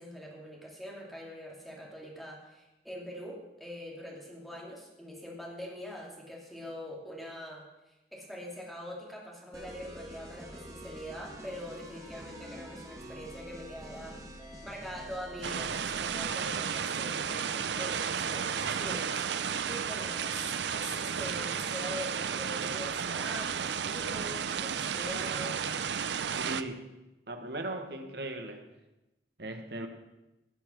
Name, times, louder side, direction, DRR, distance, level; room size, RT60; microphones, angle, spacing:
voice 1, 0.0-14.2 14.4-25.6, equal, ahead, -3 dB, 2.9 m, -43 dB
sound 1, 9.5-16.5, right 1 dB, 20° right, 1.8 m, -46 dB
sound 2, 15.4-26.6, right 7 dB, 85° right, 0.6 m, -33 dB
voice 2, 26.2-26.9 27.3-28.6 29.4-29.9, right 2 dB, 65° right, 5 dB, 1.6 m, -38 dB
17.0 x 6.9 x 6.3 m, 0.96 s
head